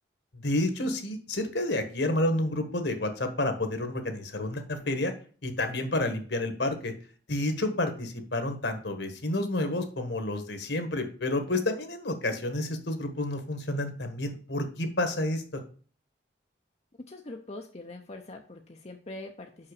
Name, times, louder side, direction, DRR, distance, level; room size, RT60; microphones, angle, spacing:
voice 1, 0.3-5.1 5.4-6.9 7.3-15.6, left 1 dB, 65° left, 7 dB, 1.5 m, -30 dB
voice 2, 17.1-19.7, left 2 dB, 35° left, 3 dB, 0.6 m, -43 dB
5.8 x 5.7 x 6.7 m, 0.41 s
head